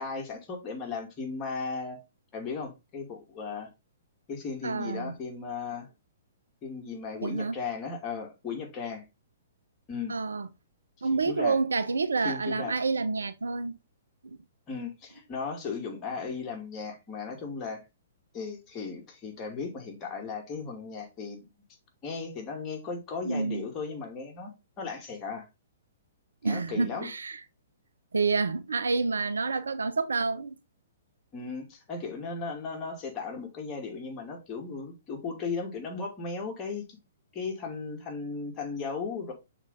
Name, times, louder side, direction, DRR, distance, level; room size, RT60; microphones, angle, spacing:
voice 1, 0.0-2.0 2.3-3.7 4.3-5.9 6.6-9.0 9.9-10.1 11.2-11.5 12.2-12.7 14.7-17.8 18.3-21.5 22.0-24.5 24.8-25.5 26.4-27.1 31.3-36.8 37.3-39.3, left 5 dB, 25° left, 2.4 m, -36 dB
voice 2, 4.6-5.1 7.2-7.5 10.1-10.5 11.0-13.7 14.2-14.4 23.2-23.7 26.4-27.4 28.1-30.6, right 4 dB, 75° right, 0.6 m, -28 dB
6.4 x 4.1 x 3.6 m
figure-of-eight pair, 120°, 0 cm